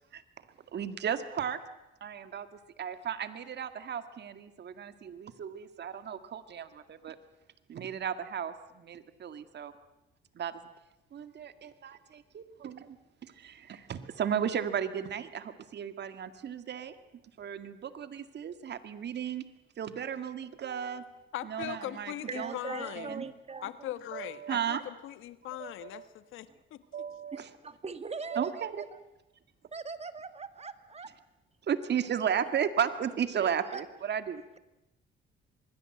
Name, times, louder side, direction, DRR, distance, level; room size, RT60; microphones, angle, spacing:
voice 1, 0.1-1.6 2.0-2.5 2.8-7.2 7.7-9.7 10.3-10.7 11.1-17.0 17.4-19.4 19.8-21.1 21.4-22.6 23.0-23.3 24.1-24.8 25.4-26.1 26.9-27.5 28.3-28.8 31.6-34.4, right 8 dB, 60° right, 11 dB, 2.0 m, -35 dB
voice 2, 21.3-23.3 23.6-26.8, left 13 dB, 85° left, 13 dB, 1.4 m, -40 dB
voice 3, 22.3-23.9 27.3-27.4 27.8-28.8 29.7-31.2 33.4-33.8, right 4 dB, 30° right, 11 dB, 2.0 m, -41 dB
25.5 x 21.0 x 7.9 m, 0.94 s
cardioid pair, 90°, 20 cm